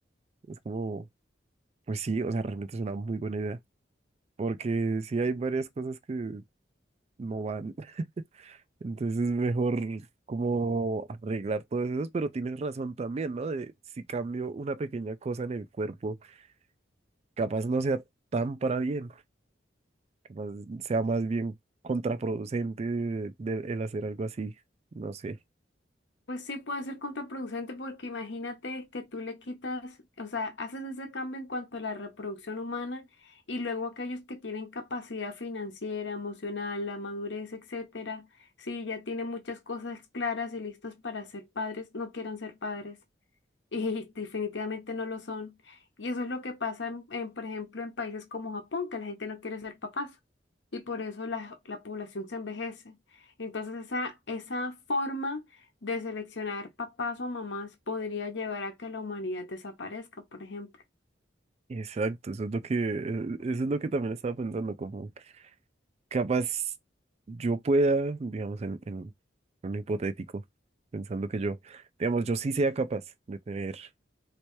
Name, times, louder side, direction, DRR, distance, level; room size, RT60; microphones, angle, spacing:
voice 1, 0.5-1.0 1.9-3.6 4.4-6.4 7.2-8.1 8.4-16.2 17.4-18.0 18.3-19.1 20.3-21.5 21.8-24.5 25.0-25.4 61.7-65.1 66.1-66.7 67.3-69.1 69.6-70.4 70.9-73.0 73.3-73.9, right 3 dB, 35° right, 0.4 m, -31 dB
voice 2, 26.3-38.3 38.6-43.0 43.7-50.1 50.7-53.0 53.4-55.5 55.8-60.7, left 3 dB, 75° left, 1.0 m, -35 dB
3.2 x 2.9 x 3.1 m
head